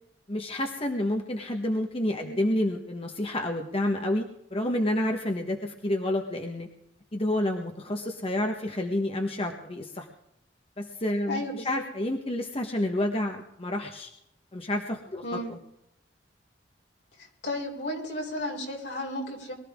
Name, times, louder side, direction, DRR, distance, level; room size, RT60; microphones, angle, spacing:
voice 1, 0.3-6.7 7.1-10.1 10.8-14.1 14.5-15.2 15.5-15.6, left 1 dB, 35° left, 3 dB, 1.3 m, -29 dB
voice 2, 11.3-11.9 15.2-15.5 17.4-19.5, left 1 dB, 75° left, 0 dB, 4.1 m, -33 dB
22.5 x 14.5 x 3.7 m, 0.78 s
head